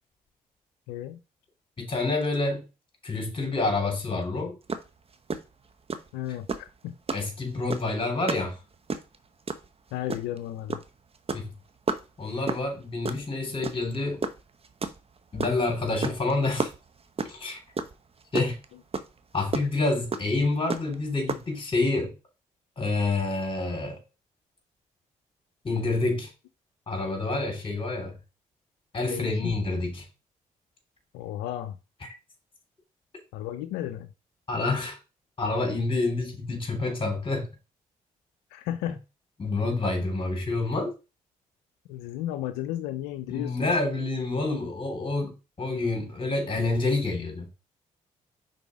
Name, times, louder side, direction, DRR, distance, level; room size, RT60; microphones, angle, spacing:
voice 1, 0.9-1.2 6.1-6.5 6.8-7.0 8.0-8.1 9.9-10.8 29.1-29.5 31.1-31.8 33.3-34.1 38.5-39.0 41.9-43.7, left 12 dB, 90° left, 0.4 m, -33 dB
voice 2, 1.8-2.6 3.0-4.5 7.1-8.6 11.3-11.5 12.2-14.3 15.3-16.7 17.2-17.6 18.3-18.6 19.3-22.1 22.8-24.0 25.6-26.3 26.9-28.2 28.9-30.0 32.0-32.1 34.5-35.0 35.4-37.5 39.4-40.9 43.3-47.5, left 3 dB, 35° left, 3.2 m, -28 dB
sound 1, 4.7-4.9 5.1-5.4 5.9-6.1 6.5-6.7 7.1-7.3 7.7-7.9 8.3-8.5 8.7-9.2 9.5-9.7 10.1-10.4 10.7-10.9 11.1-11.5 11.9-12.0 12.5-12.7 13.0-13.2 13.6-14.0 14.2-15.6 16.0-16.3 16.6-17.4 17.8-17.9 18.2-18.6 18.9-19.0 19.5-19.6 20.1-20.2 20.7-20.9 21.3-21.4, right 4 dB, 35° right, 0.9 m, -29 dB
5.3 x 4.0 x 4.8 m
supercardioid pair, 50°, 16 cm